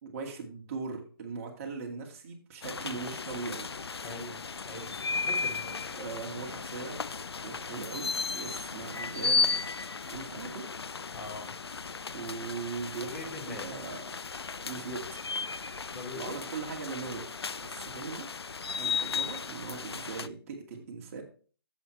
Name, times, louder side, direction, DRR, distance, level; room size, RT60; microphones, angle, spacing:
voice 1, 0.0-3.7 6.0-7.0 7.4-9.8 10.1-10.7 12.1-14.0 14.7-15.3 16.1-17.3 17.6-18.3 18.8-21.2, right 4 dB, 35° right, 2 dB, 2.3 m, -40 dB
sound 1, 2.6-20.3, left 5 dB, 85° left, 0.5 m, -35 dB
voice 2, 4.0-5.9 11.1-11.5 13.0-13.7 15.9-16.4, left 2 dB, 45° left, -4 dB, 5.1 m, -42 dB
10.5 x 7.9 x 3.2 m, 0.39 s
figure-of-eight pair, 150°, 13 cm